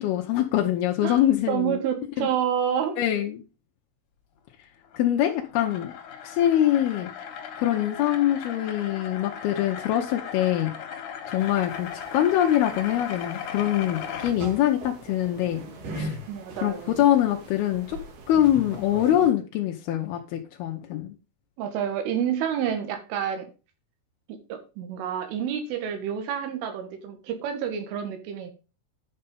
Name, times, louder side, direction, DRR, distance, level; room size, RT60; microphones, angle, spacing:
voice 1, 0.0-1.8 2.2-2.3 3.0-3.4 5.0-5.9 6.2-7.1 7.6-10.7 11.3-15.6 15.9-16.2 16.6-18.0 18.3-21.1, left 12 dB, 85° left, 2 dB, 2.2 m, -24 dB
voice 2, 1.5-3.0 16.3-16.9 21.6-23.5 24.5-28.5, right 9 dB, 80° right, 7 dB, 4.1 m, -28 dB
sound 1, 4.8-14.3, left 8 dB, 55° left, 2.3 m, -37 dB
sound 2, 11.4-19.3, right 1 dB, 55° right, 2.7 m, -41 dB
10.5 x 5.6 x 5.3 m, 0.32 s
omnidirectional pair, 5.6 m